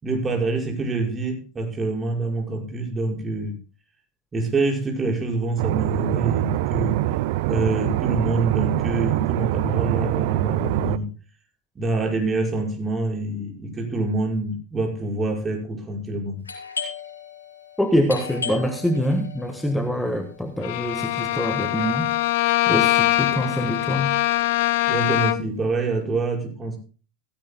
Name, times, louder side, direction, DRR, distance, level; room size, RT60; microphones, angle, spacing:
voice 1, 0.0-3.6 4.3-7.0 7.5-11.1 11.8-16.4 24.9-26.8, right 2 dB, 20° right, -2 dB, 5.8 m, -26 dB
sound 1, 5.6-11.0, right 16 dB, 55° right, 0.6 m, -24 dB
Doorbell, 16.4-21.9, left 6 dB, 80° left, 4.7 m, -37 dB
voice 2, 17.8-22.1 22.7-24.1, equal, 5° left, 7 dB, 1.4 m, -24 dB
Bowed string instrument, 20.6-25.6, left 15 dB, 60° left, 0.7 m, -22 dB
16.5 x 15.5 x 2.2 m, 0.36 s
figure-of-eight pair, 80°, 0 cm